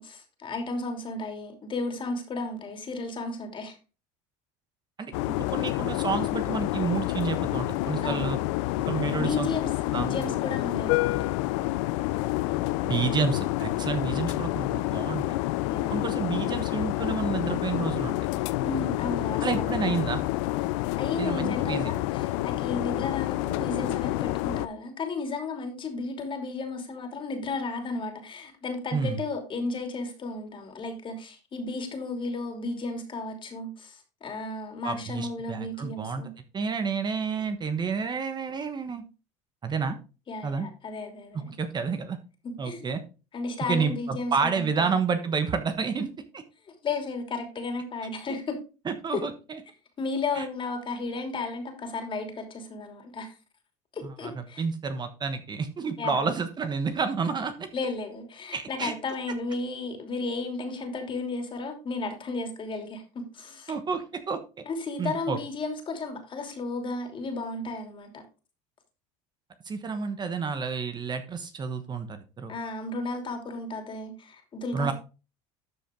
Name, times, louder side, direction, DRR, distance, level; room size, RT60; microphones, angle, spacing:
voice 1, 0.0-3.8 8.0-8.3 9.2-11.3 15.7-16.0 18.6-19.7 21.0-36.3 40.3-41.4 42.4-43.0 43.3-45.0 46.8-48.6 49.1-49.2 50.0-53.4 53.9-54.6 56.0-56.3 57.7-63.7 64.7-68.2 72.5-74.9, left 3 dB, 35° left, 2.9 m, -34 dB
voice 2, 5.0-8.4 8.9-9.5 9.9-10.1 12.8-15.2 15.9-18.2 19.4-20.2 21.2-21.9 28.9-29.2 34.8-39.0 39.6-40.0 40.4-40.7 41.6-42.2 42.6-43.0 43.6-46.1 46.3-46.4 48.9-49.6 50.3-50.5 54.0-57.7 58.5-58.9 63.7-64.4 65.0-65.4 69.6-72.5 74.7-74.9, right 5 dB, 30° right, 1.2 m, -30 dB
sound 1, 5.1-24.7, left 18 dB, 80° left, 0.6 m, -28 dB
12.5 x 5.2 x 3.8 m
supercardioid pair, 110°, 15 cm